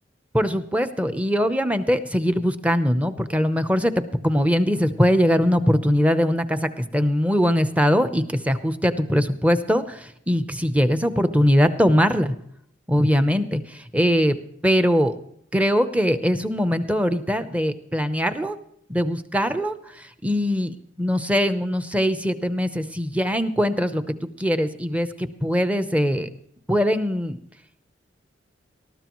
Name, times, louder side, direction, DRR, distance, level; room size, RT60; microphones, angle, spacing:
voice 1, 0.3-12.3 12.9-14.4 14.6-15.2 15.5-18.6 18.9-24.0 24.4-26.3 26.7-27.4, equal, 5° right, 10 dB, 0.7 m, -21 dB
19.5 x 14.0 x 3.1 m, 0.69 s
head